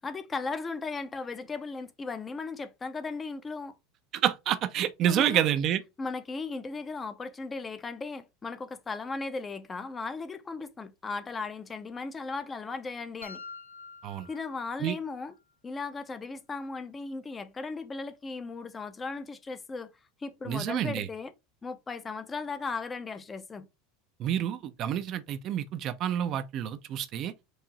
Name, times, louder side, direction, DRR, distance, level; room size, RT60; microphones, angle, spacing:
voice 1, 0.0-3.8 5.1-5.4 6.0-13.4 14.3-15.3 15.6-19.9 20.2-21.3 21.6-23.7, left 4 dB, 20° left, 0.6 m, -36 dB
voice 2, 4.1-5.8 14.0-14.3 14.8-15.0 20.5-21.1 24.2-27.3, right 10 dB, 45° right, 0.5 m, -28 dB
sound 1, 13.2-15.2, left 4 dB, 85° left, 0.6 m, -47 dB
4.7 x 2.7 x 3.9 m
figure-of-eight pair, 80°, 0 cm